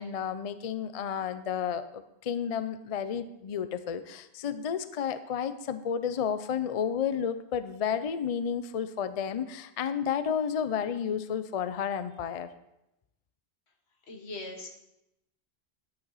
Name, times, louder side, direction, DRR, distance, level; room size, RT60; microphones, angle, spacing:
voice 1, 0.0-12.5, left 8 dB, 45° left, 12 dB, 0.5 m, -31 dB
voice 2, 14.1-14.8, left 2 dB, 85° left, 2 dB, 1.7 m, -40 dB
10.5 x 8.8 x 4.1 m, 0.85 s
omnidirectional pair, 1.1 m